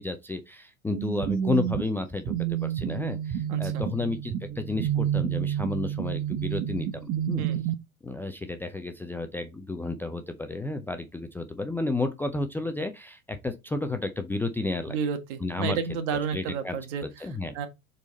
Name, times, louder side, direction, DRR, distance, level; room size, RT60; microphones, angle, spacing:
voice 1, 0.0-7.4 8.0-15.0 15.4-15.8 16.3-16.8 17.0-17.5, left 2 dB, 5° left, 0.5 m, -32 dB
sound 1, 0.9-7.7, right 10 dB, 30° right, 0.8 m, -29 dB
voice 2, 3.5-3.8 7.4-7.6 14.9-17.3 17.5-17.7, right 6 dB, 55° right, 1.7 m, -31 dB
7.0 x 4.2 x 4.0 m
hypercardioid pair, 90°, 41 cm